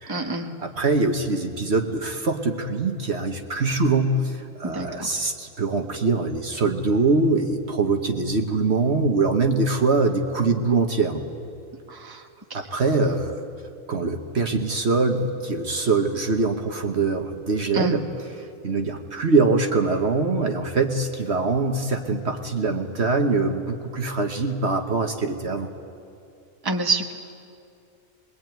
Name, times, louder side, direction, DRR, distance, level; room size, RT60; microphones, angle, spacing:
voice 1, 0.1-0.5 4.6-5.1 11.9-12.6 17.7-17.9 26.6-27.1, right 2 dB, 15° right, 4 dB, 1.3 m, -28 dB
voice 2, 0.6-11.2 12.5-13.4 13.9-18.1 18.4-25.7, right 3 dB, 50° right, 4 dB, 1.5 m, -23 dB
23.0 x 22.0 x 9.2 m, 2.5 s
omnidirectional pair, 1.5 m